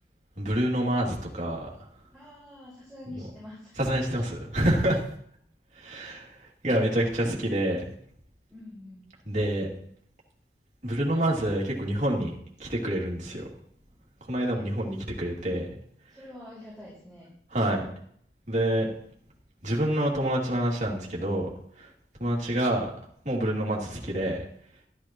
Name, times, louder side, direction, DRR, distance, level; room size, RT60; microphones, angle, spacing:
voice 1, 0.4-1.7 3.1-3.2 3.8-5.0 5.8-7.8 9.2-9.7 10.8-12.3 12.6-13.5 14.3-15.7 17.5-17.9 18.5-18.9 19.6-21.5 21.8-21.9 22.2-22.9 23.2-24.4, right 1 dB, 40° right, -3 dB, 2.6 m, -27 dB
voice 2, 2.1-3.8 4.1-4.2 8.5-9.1 14.3-15.1 16.1-17.3, left 1 dB, ahead, -9 dB, 4.8 m, -46 dB
13.0 x 12.0 x 3.0 m, 0.65 s
head